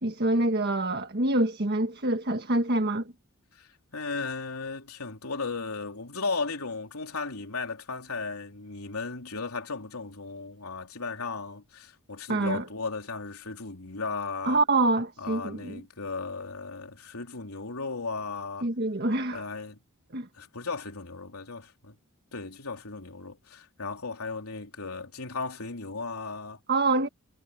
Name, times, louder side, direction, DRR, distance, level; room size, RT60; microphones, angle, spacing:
voice 1, 0.0-3.1 12.3-12.7 14.4-15.8 18.6-19.5 20.1-20.3 26.7-27.1, right 2 dB, 50° right, 1.6 m, -26 dB
voice 2, 3.6-14.6 15.2-18.7 19.3-19.8 20.4-21.9 22.3-26.6, left 4 dB, 80° left, 3.6 m, -36 dB
head